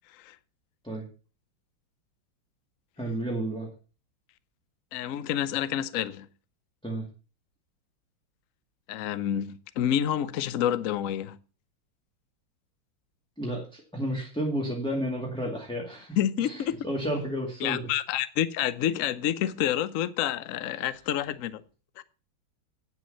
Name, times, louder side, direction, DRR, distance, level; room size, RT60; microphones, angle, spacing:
voice 1, 3.0-3.7 6.8-7.1 13.4-17.9, equal, ahead, 2.2 m, -32 dB
voice 2, 4.9-6.3 8.9-11.4 16.2-16.8 17.6-21.6 22.0-22.1, left 10 dB, 75° left, 0.7 m, -28 dB
9.4 x 7.8 x 5.5 m
omnidirectional pair, 2.2 m